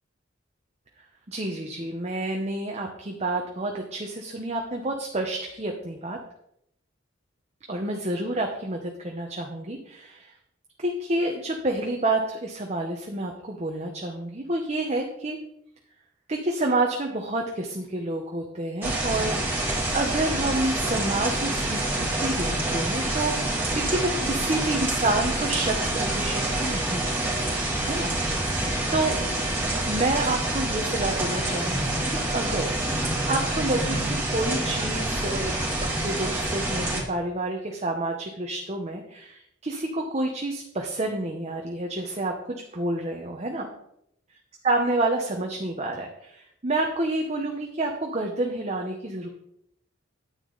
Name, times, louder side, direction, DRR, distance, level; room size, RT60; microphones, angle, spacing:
voice 1, 1.3-6.2 7.7-10.3 10.8-15.4 16.3-27.4 27.8-28.1 28.9-29.2 29.9-32.7 33.3-43.7 44.6-49.3, right 2 dB, 35° right, 2 dB, 1.0 m, -29 dB
sound 1, 18.8-37.0, right 1 dB, 10° right, 2.8 m, -27 dB
9.8 x 9.2 x 4.0 m, 0.75 s
head